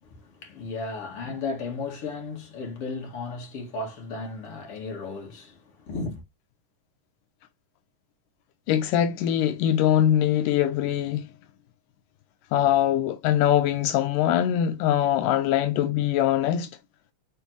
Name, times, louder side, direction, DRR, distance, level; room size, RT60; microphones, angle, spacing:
voice 1, 0.0-6.2, left 3 dB, 45° left, 3.0 m, -35 dB
voice 2, 8.7-11.3 12.5-16.7, left 11 dB, 80° left, 2.3 m, -22 dB
7.1 x 4.4 x 3.1 m
omnidirectional pair, 3.8 m